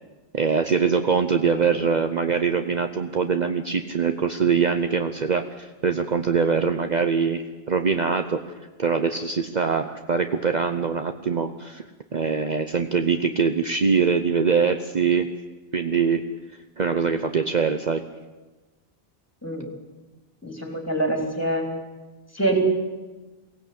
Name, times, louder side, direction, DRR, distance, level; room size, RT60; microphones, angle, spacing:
voice 1, 0.3-8.4 8.8-11.9 12.1-15.3 15.7-16.2 16.8-18.0, right 5 dB, 45° right, 7 dB, 0.9 m, -23 dB
voice 2, 1.5-1.9 19.4-19.7 20.4-21.7 22.3-22.7, right 2 dB, 15° left, 2 dB, 3.7 m, -25 dB
23.0 x 16.5 x 8.7 m, 1.2 s
omnidirectional pair, 1.0 m